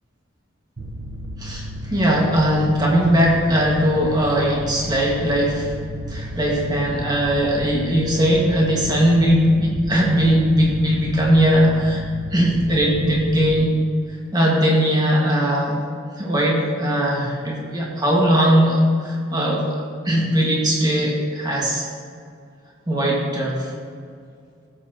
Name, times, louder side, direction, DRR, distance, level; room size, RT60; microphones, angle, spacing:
Mechanical fan, 0.8-13.5, equal, 60° right, 0.9 m, -33 dB
voice 1, 1.9-5.7 6.1-12.0 12.3-13.8 14.3-15.8 16.2-21.9 22.9-23.7, equal, 20° right, -3 dB, 1.8 m, -19 dB
15.5 x 7.8 x 3.0 m, 2.3 s
head